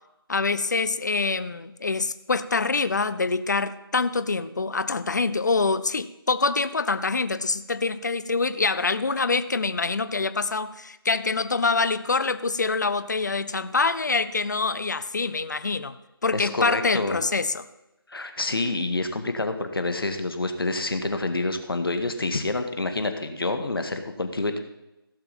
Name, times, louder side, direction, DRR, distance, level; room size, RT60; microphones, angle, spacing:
voice 1, 0.3-15.9 16.2-17.6, left 4 dB, 45° left, 13 dB, 0.7 m, -25 dB
voice 2, 16.3-17.2 18.1-24.6, left 2 dB, 65° left, 7 dB, 1.8 m, -27 dB
16.0 x 6.8 x 5.4 m, 0.94 s
figure-of-eight pair, 170°, 13 cm